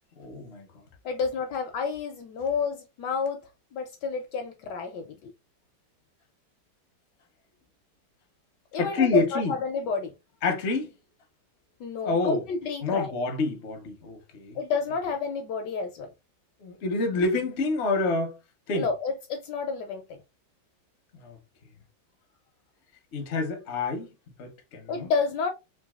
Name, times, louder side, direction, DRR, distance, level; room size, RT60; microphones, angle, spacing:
voice 1, 0.2-0.7 8.8-9.5 10.4-10.9 12.0-12.4 12.8-14.6 16.6-18.4 18.7-18.9 21.2-21.4 23.1-24.1 24.4-25.1, left 3 dB, 55° left, 0.7 m, -27 dB
voice 2, 1.0-3.4 3.7-5.3 8.7-10.1 11.8-13.1 14.5-16.1 18.7-20.0 24.9-25.5, left 5 dB, 75° left, 1.0 m, -30 dB
3.9 x 3.2 x 2.3 m
omnidirectional pair, 2.2 m